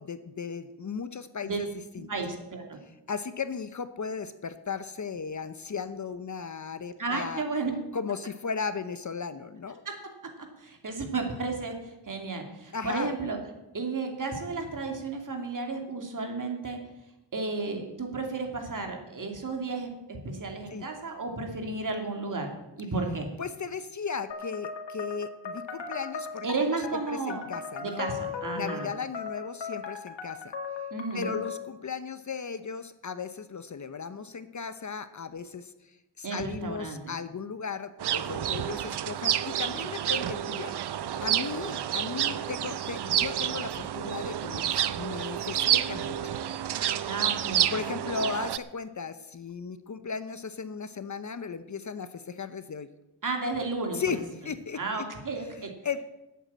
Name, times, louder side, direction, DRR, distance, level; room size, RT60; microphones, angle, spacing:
voice 1, 0.0-1.7 1.9-2.1 3.1-7.4 7.9-9.8 12.7-13.1 20.7-20.9 23.4-26.8 27.1-28.1 28.6-30.5 31.1-40.8 41.2-46.3 47.7-52.9 53.9-54.2 54.4-55.0 55.6-56.1, left 5 dB, 40° left, 12 dB, 0.8 m, -36 dB
voice 2, 2.1-2.8 7.0-7.7 9.8-10.3 10.6-13.4 13.7-16.8 17.3-23.3 26.4-27.4 27.8-28.9 30.9-31.4 36.2-37.2 47.1-47.7 53.2-54.2 54.7-55.7, right 3 dB, 45° right, 3 dB, 2.9 m, -33 dB
sound 1, 24.3-31.7, left 5 dB, 75° left, 2.1 m, -38 dB
sound 2, 38.0-48.6, right 10 dB, 65° right, 0.7 m, -29 dB
12.0 x 8.4 x 8.6 m, 0.94 s
wide cardioid pair, 100°, 44 cm